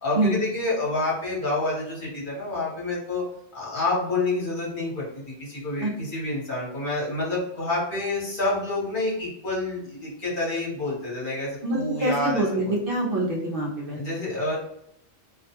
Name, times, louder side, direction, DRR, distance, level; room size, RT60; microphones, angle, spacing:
voice 1, 0.0-3.2 3.5-12.8 13.9-14.5, left 2 dB, 50° left, -6 dB, 1.1 m, -28 dB
voice 2, 11.6-14.0, right 1 dB, 60° right, -1 dB, 0.7 m, -25 dB
2.4 x 2.1 x 2.8 m, 0.74 s
omnidirectional pair, 1.2 m